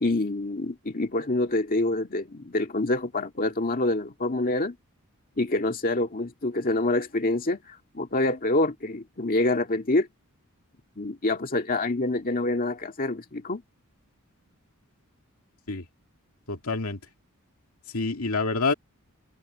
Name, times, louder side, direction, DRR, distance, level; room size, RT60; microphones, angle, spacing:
voice 1, 0.0-4.8 5.4-10.1 11.0-13.6, left 2 dB, 40° left, 2.0 m, -26 dB
voice 2, 16.5-17.0 17.9-18.7, left 3 dB, 70° left, 2.4 m, -27 dB
head